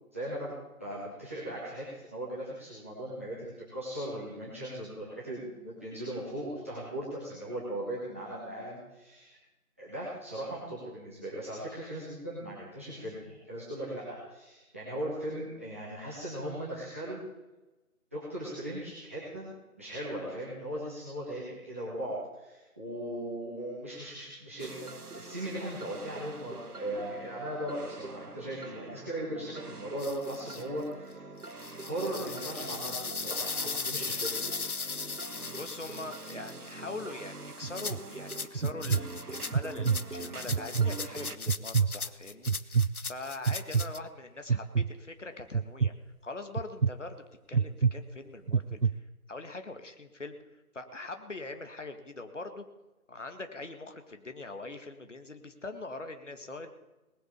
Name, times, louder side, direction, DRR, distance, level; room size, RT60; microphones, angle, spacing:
voice 1, 0.1-9.4 9.8-17.2 18.1-19.5 19.8-24.9 25.1-31.2 31.8-34.4, right 1 dB, 10° right, -10 dB, 1.5 m, -38 dB
sound 1, 24.6-41.4, right 3 dB, 75° right, 1.4 m, -44 dB
sound 2, 30.0-30.6 31.4-36.7 37.7-44.0, left 4 dB, 70° left, 0.9 m, -37 dB
voice 2, 35.5-45.9 46.2-49.0 49.3-52.7 53.1-56.7, left 2 dB, 50° left, 7 dB, 1.9 m, -43 dB
sound 3, 37.6-38.0 38.6-39.0 39.5-40.0 40.5-40.9 41.5-41.9 42.5-42.9 43.5-43.8 44.5-44.9 45.5-45.9 46.6-46.9 47.5-47.9 48.5-48.9, right 6 dB, 60° right, 0.5 m, -25 dB
19.5 x 8.0 x 6.8 m, 1.1 s
figure-of-eight pair, 165°, 45 cm